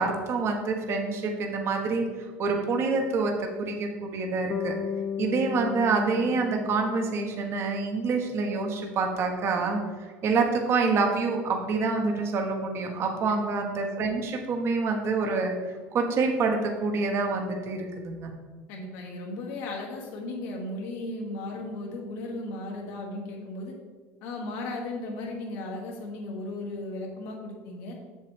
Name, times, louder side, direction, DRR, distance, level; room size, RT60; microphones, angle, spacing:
voice 1, 0.0-4.8 5.2-9.8 10.2-18.3, right 4 dB, 45° right, 2 dB, 1.2 m, -27 dB
Bass guitar, 4.5-8.6, left 7 dB, 35° left, 0.4 m, -36 dB
voice 2, 18.7-23.8 24.2-28.0, left 2 dB, 80° left, -1 dB, 2.1 m, -36 dB
7.6 x 7.4 x 3.4 m, 1.4 s
supercardioid pair, 110°, 6 cm